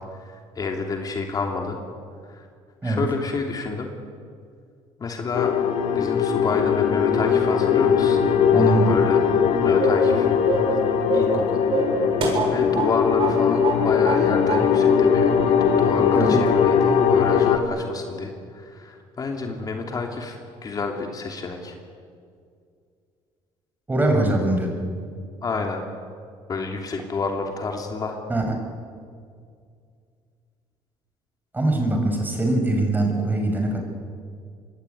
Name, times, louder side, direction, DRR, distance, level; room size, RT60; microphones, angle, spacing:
voice 1, 0.2-1.8 2.3-2.5 2.8-3.9 5.0-5.5 5.9-8.2 8.5-9.2 9.6-10.3 11.1-11.6 12.5-21.7 25.4-25.8 26.5-28.2, left 3 dB, 35° left, 3 dB, 3.1 m, -29 dB
sound 1, 5.3-17.6, left 7 dB, 75° left, 2.9 m, -20 dB
voice 2, 8.5-8.9 16.1-16.3 23.9-24.7 28.3-28.4 31.5-33.8, right 2 dB, 15° right, 3 dB, 6.2 m, -22 dB
sound 2, 9.8-10.1 10.5-10.8 11.1-11.4 11.7-12.9 13.2-13.4 13.6-14.2 14.5-14.7, right 4 dB, 55° right, 7.4 m, -25 dB
25.5 x 21.5 x 9.5 m, 2.2 s
cardioid pair, 110°, 11 cm